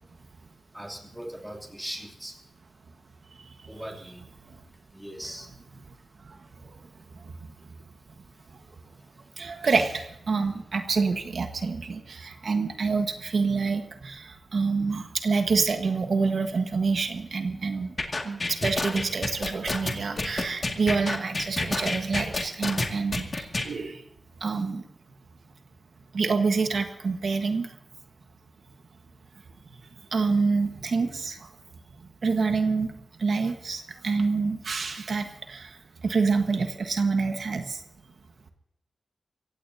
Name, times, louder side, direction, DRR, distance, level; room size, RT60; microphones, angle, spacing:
voice 1, 0.7-2.4 3.7-4.3 4.9-5.5 8.3-8.5 8.8-9.6, equal, 5° right, 0 dB, 2.9 m, -41 dB
voice 2, 9.4-17.9 18.2-24.0 24.4-24.8 26.1-27.7 30.1-31.5 32.2-32.9 33.2-35.8 36.0-37.8, right 4 dB, 65° right, 6 dB, 1.4 m, -27 dB
sound 1, 18.0-23.7, left 2 dB, 35° left, 2.1 m, -29 dB
26.0 x 16.0 x 2.8 m, 0.84 s
wide cardioid pair, 135°, 0 cm